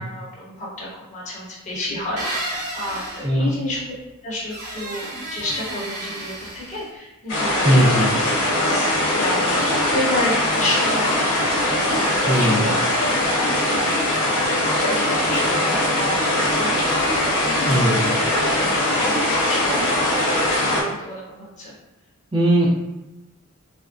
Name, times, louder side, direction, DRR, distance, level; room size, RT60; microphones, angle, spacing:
voice 1, 0.0-3.9 4.2-7.8 8.1-8.2 8.5-13.5 14.7-19.8 20.1-21.7, left 1 dB, 35° left, -6 dB, 0.9 m, -31 dB
sound 1, 2.2-3.3 4.5-6.9, right 1 dB, 85° right, 1.0 m, -32 dB
sound 2, 7.3-20.8, left 1 dB, 60° left, 1.1 m, -21 dB
voice 2, 7.6-8.1 12.3-12.6 17.6-18.1 22.3-22.7, equal, 20° right, -5 dB, 0.5 m, -18 dB
3.4 x 2.1 x 2.4 m, 0.98 s
head